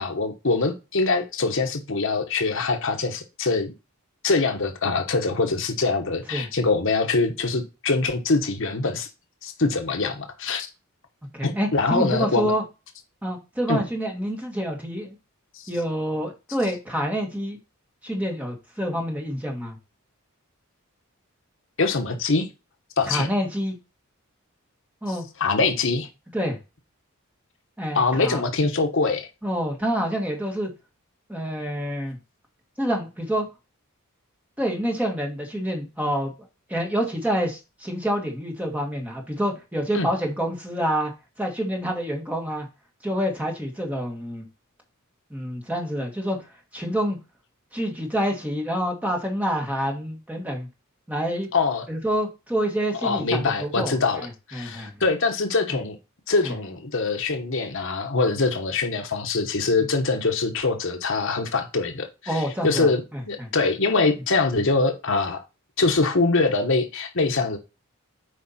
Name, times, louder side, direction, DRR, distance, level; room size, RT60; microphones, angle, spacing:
voice 1, 0.0-3.7 4.2-9.1 9.4-10.7 11.4-12.5 13.7-13.8 15.5-15.7 21.8-22.5 23.0-23.3 25.4-26.1 27.9-29.3 39.9-40.1 51.5-51.9 53.0-56.0 56.3-63.0 63.3-65.4 65.8-67.6, left 3 dB, 60° left, 1.2 m, -23 dB
voice 2, 11.3-12.6 13.2-15.2 15.7-17.6 18.0-19.8 23.1-23.8 25.0-25.2 26.3-26.6 27.8-28.4 29.4-30.7 31.3-32.2 32.8-33.5 34.6-36.3 36.7-41.1 41.4-42.7 43.0-44.5 45.3-47.2 47.7-50.7 51.1-51.5 51.9-55.0 55.7-55.8 56.4-56.5 62.3-63.5, equal, 5° right, 1.8 m, -27 dB
8.3 x 4.9 x 4.3 m
head